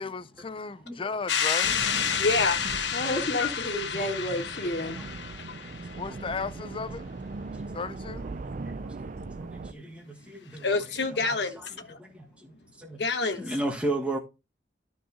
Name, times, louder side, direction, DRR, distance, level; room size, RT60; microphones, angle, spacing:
voice 1, 0.0-1.8 6.0-7.1 7.7-8.2, left 4 dB, 30° left, 0.5 m, -34 dB
sound 1, 1.3-6.1, left 7 dB, 90° left, 0.9 m, -30 dB
sound 2, 1.6-9.7, right 3 dB, 50° right, 0.5 m, -40 dB
voice 2, 2.2-2.6 3.0-3.5 5.4-5.5 10.6-12.0 13.0-13.4, left 3 dB, 70° left, 1.2 m, -28 dB
voice 3, 2.9-5.1, left 1 dB, 55° left, 2.4 m, -31 dB
voice 4, 8.9-10.7 11.2-11.3 12.0-13.0 13.4-14.2, right 1 dB, 5° right, 1.7 m, -34 dB
13.0 x 4.7 x 4.2 m
head